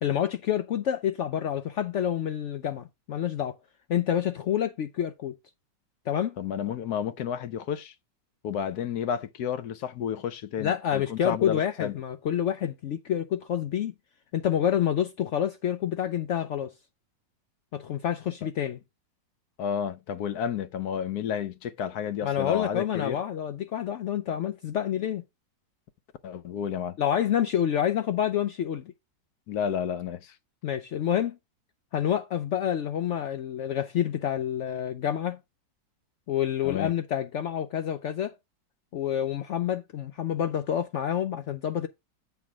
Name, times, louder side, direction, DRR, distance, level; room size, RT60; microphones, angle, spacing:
voice 1, 0.0-3.6 3.9-5.3 6.1-6.4 10.6-13.9 14.3-16.7 17.7-18.8 22.2-25.2 27.0-28.8 30.6-31.4 31.9-35.4 36.3-38.4 38.9-41.9, left 10 dB, 85° left, 0.6 m, -28 dB
voice 2, 6.4-7.9 8.4-11.9 19.6-23.2 26.2-27.0 29.5-30.4 36.6-36.9, left 8 dB, 70° left, 1.1 m, -31 dB
8.1 x 3.4 x 5.9 m
omnidirectional pair, 1.9 m